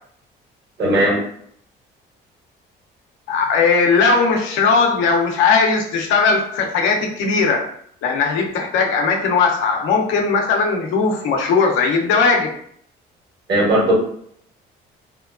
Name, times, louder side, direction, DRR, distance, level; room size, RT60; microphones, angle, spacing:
voice 1, 0.8-1.2 13.5-14.0, right 1 dB, 60° right, -4 dB, 1.4 m, -16 dB
voice 2, 3.3-7.7 8.0-12.5, left 4 dB, 80° left, 1 dB, 0.6 m, -18 dB
2.8 x 2.2 x 2.4 m, 0.65 s
supercardioid pair, 80°, 20 cm